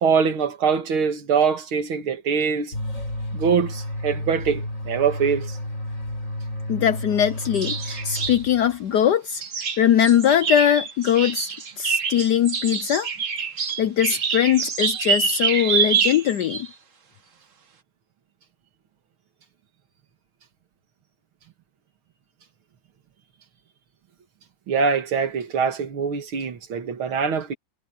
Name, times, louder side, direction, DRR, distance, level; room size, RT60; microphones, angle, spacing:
voice 1, 0.0-2.7 3.3-5.6 24.7-27.5, right 6 dB, 70° right, 2.5 m, -23 dB
sound 1, 2.7-8.8, left 1 dB, 35° left, 6.0 m, -31 dB
voice 2, 6.7-9.4 9.8-13.1 13.8-16.7, left 9 dB, 70° left, 1.0 m, -21 dB
sound 2, 7.2-7.3 7.5-8.4 9.4-16.7, right 6 dB, 40° right, 1.5 m, -26 dB
omnidirectional pair, 2.4 m